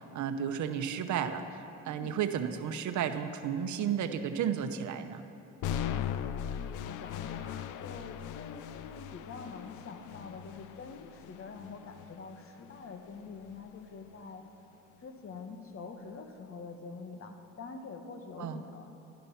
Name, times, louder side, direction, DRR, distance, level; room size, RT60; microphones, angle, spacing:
voice 1, 0.0-5.2 18.4-18.6, right 8 dB, 70° right, 8 dB, 0.8 m, -33 dB
sound 1, 5.6-13.6, left 9 dB, 90° left, 0.6 m, -39 dB
voice 2, 5.7-6.1 6.5-14.4 15.0-18.9, left 4 dB, 45° left, 5 dB, 1.3 m, -45 dB
12.0 x 11.5 x 5.7 m, 3.0 s
cardioid pair, 90°, 30 cm